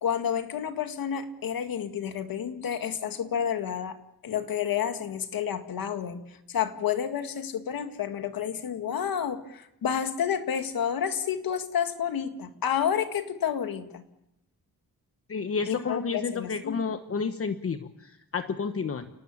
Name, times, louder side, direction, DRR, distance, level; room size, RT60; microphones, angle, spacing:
voice 1, 0.0-4.0 4.2-6.2 6.5-14.0 15.7-16.8, left 8 dB, 85° left, 7 dB, 2.0 m, -30 dB
voice 2, 15.3-19.1, left 5 dB, 40° left, 8 dB, 1.1 m, -31 dB
29.5 x 18.5 x 7.3 m, 0.84 s
wide cardioid pair, 120°, 34 cm